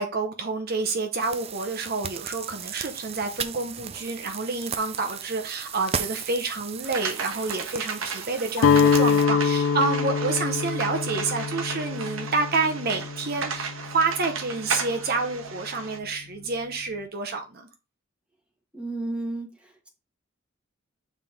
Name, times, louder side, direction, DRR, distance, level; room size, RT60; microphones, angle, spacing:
voice 1, 0.0-17.7, right 3 dB, 50° right, 0.9 m, -28 dB
sound 1, 1.2-9.3, right 7 dB, 30° right, 0.4 m, -36 dB
sound 2, 6.8-16.0, right 5 dB, 85° right, 1.2 m, -35 dB
Guitar, 8.6-14.6, left 6 dB, 75° left, 0.5 m, -25 dB
voice 2, 18.7-19.9, right 2 dB, 5° right, 1.4 m, -33 dB
7.2 x 4.2 x 3.6 m
head